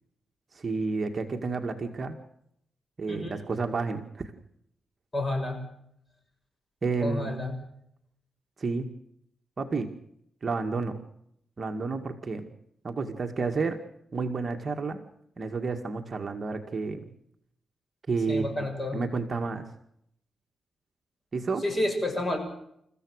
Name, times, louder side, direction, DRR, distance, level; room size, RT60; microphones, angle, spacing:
voice 1, 0.5-2.2 3.0-4.3 6.8-7.3 8.6-8.9 9.6-9.9 10.4-11.0 11.6-12.5 12.8-13.8 14.1-15.0 15.4-17.0 18.1-18.4 18.9-19.7 21.3-21.6, right 4 dB, 35° right, 4 dB, 2.1 m, -30 dB
voice 2, 3.1-3.4 5.1-5.6 7.0-7.6 18.3-19.0 21.6-22.4, left 1 dB, 25° left, 4 dB, 6.9 m, -30 dB
30.0 x 15.0 x 6.5 m, 0.73 s
wide cardioid pair, 125°, 0 cm